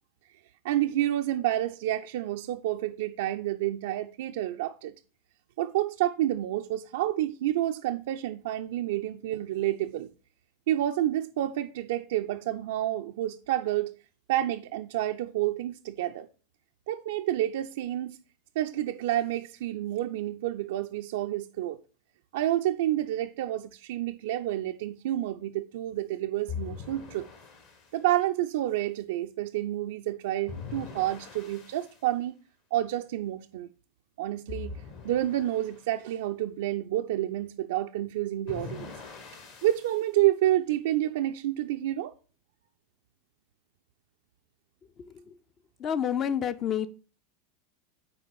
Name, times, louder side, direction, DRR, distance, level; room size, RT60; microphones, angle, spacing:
voice 1, 0.6-4.9 5.6-10.1 10.7-14.0 14.3-16.3 16.9-18.2 18.6-21.8 22.3-27.3 27.9-32.4 32.7-33.7 34.2-34.8 35.0-38.9 39.6-42.1, right 13 dB, 55° right, 0.4 m, -29 dB
sound 1, 26.5-27.9 30.5-32.0 34.5-35.8 38.5-40.0, left 6 dB, 50° left, 1.5 m, -42 dB
voice 2, 45.0-45.4 45.8-46.9, left 9 dB, 30° left, 0.5 m, -29 dB
7.0 x 4.6 x 4.9 m
figure-of-eight pair, 85°, 0 cm